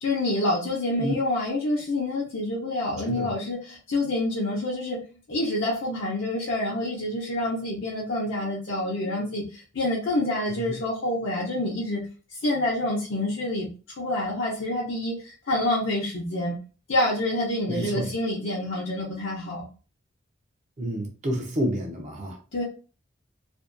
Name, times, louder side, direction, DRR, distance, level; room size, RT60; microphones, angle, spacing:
voice 1, 0.0-5.0 5.3-12.0 12.3-13.7 14.0-16.6 16.9-19.7 22.5-22.6, left 1 dB, 70° left, -5 dB, 0.6 m, -27 dB
voice 2, 17.7-18.1 20.8-22.4, equal, 35° right, 1 dB, 0.5 m, -29 dB
2.5 x 2.2 x 2.5 m, 0.36 s
head